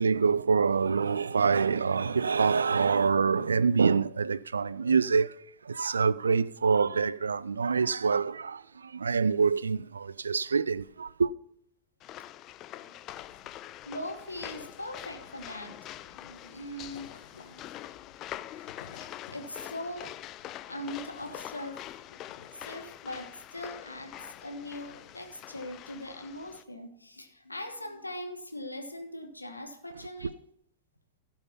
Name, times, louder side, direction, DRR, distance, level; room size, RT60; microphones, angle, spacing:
voice 1, 0.0-5.4 5.6-11.3, right 5 dB, 75° right, 0.3 m, -26 dB
sound 1, 12.0-26.6, left 13 dB, 35° left, 0.4 m, -45 dB
sound 2, 13.1-26.6, left 6 dB, 65° left, 2.1 m, -56 dB
voice 2, 13.8-17.7 18.5-20.1 20.5-22.3 22.5-30.4, left 1 dB, 85° left, 1.4 m, -41 dB
15.5 x 5.6 x 5.6 m
figure-of-eight pair, 90°, 0 cm